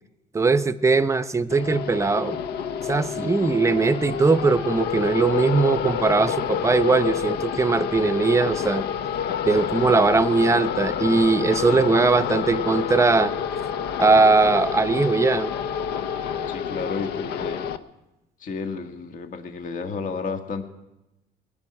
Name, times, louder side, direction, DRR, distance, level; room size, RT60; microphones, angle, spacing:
voice 1, 0.3-2.4 2.9-8.8 9.4-13.3 14.0-15.5, right 3 dB, 15° right, 13 dB, 0.6 m, -20 dB
sound 1, 1.5-17.8, left 8 dB, 75° left, 0.8 m, -28 dB
voice 2, 11.7-12.0 16.5-17.6 18.4-20.6, left 4 dB, 50° left, 5 dB, 1.7 m, -32 dB
19.5 x 7.1 x 9.8 m, 0.95 s
cardioid pair, 110°, 17 cm